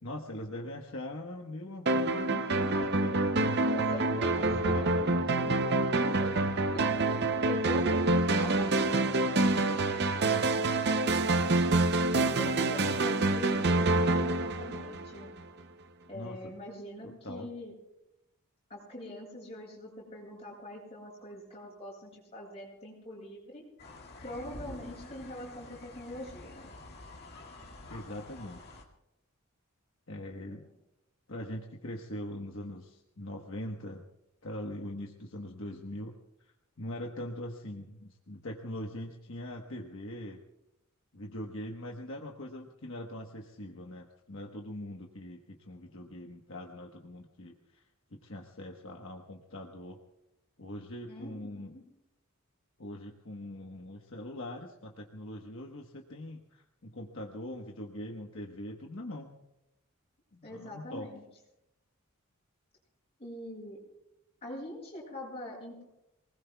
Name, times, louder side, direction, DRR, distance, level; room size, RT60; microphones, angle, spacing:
voice 1, 0.0-3.6 3.8-5.6 7.4-7.7 16.1-16.5 17.0-17.5 27.9-28.7 30.1-30.6 31.3-34.0 34.4-36.1 36.8-40.4 41.1-47.8 48.1-50.0 50.6-51.7 52.8-59.4 60.3-61.1, left 1 dB, 65° left, 0 dB, 1.3 m, -42 dB
sound 1, 1.9-15.4, right 2 dB, 50° right, 0.7 m, -27 dB
voice 2, 3.7-4.3 6.2-6.4 6.7-11.3 12.1-15.3 16.1-17.7 18.7-23.6 24.2-26.7 30.5-30.7 51.1-51.8 60.4-61.2 63.2-63.8 64.4-65.8, left 1 dB, 30° left, -5 dB, 7.8 m, -43 dB
sound 2, 23.8-28.8, left 2 dB, 50° left, 2.2 m, -48 dB
27.5 x 20.0 x 2.3 m, 0.90 s
head